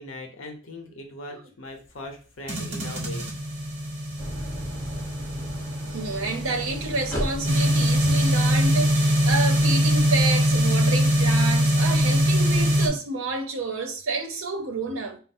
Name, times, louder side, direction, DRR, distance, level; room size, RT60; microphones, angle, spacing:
voice 1, 0.0-3.3, left 1 dB, 75° left, 0.7 m, -39 dB
sound 1, 2.5-12.9, equal, 35° right, 1.1 m, -22 dB
Idling, 4.2-11.2, equal, 15° left, 1.0 m, -37 dB
voice 2, 5.9-15.2, right 3 dB, 75° right, 0.7 m, -29 dB
4.3 x 2.0 x 4.2 m
head